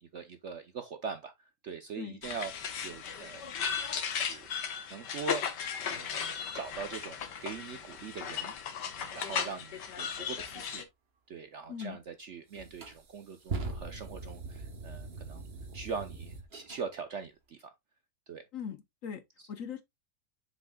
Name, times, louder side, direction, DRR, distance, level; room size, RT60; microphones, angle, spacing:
voice 1, 0.0-2.5 2.8-3.4 3.9-5.5 5.9-6.1 6.5-8.5 9.0-10.8 11.3-15.5 15.7-17.7 18.3-18.4 19.4-19.5, right 5 dB, 60° right, 0.8 m, -42 dB
sound 1, 2.2-10.8, left 7 dB, 75° left, 1.7 m, -36 dB
sound 2, 11.8-11.9 12.5-16.8, right 3 dB, 40° right, 1.2 m, -41 dB
voice 2, 18.5-19.2 19.5-19.8, left 7 dB, 60° left, 1.0 m, -40 dB
7.4 x 6.4 x 2.2 m
omnidirectional pair, 1.9 m